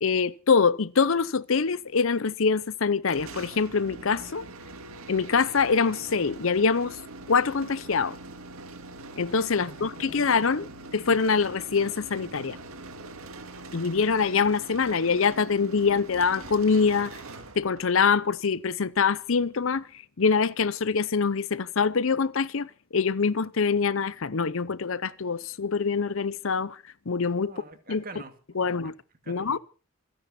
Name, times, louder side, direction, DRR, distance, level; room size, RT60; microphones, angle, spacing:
voice 1, 0.0-4.4 5.1-7.0 7.3-8.2 9.2-10.7 10.9-12.6 13.7-17.2 17.6-19.8 20.2-26.8 27.1-27.5 27.9-28.0 28.6-28.9 29.3-29.6, left 5 dB, 70° left, 0.7 m, -24 dB
sound 1, 3.1-18.0, right 2 dB, 80° right, 2.0 m, -43 dB
voice 2, 9.6-10.3 10.6-10.7 27.4-28.7 29.2-29.6, right 2 dB, 40° right, 2.2 m, -46 dB
27.5 x 10.5 x 4.3 m
head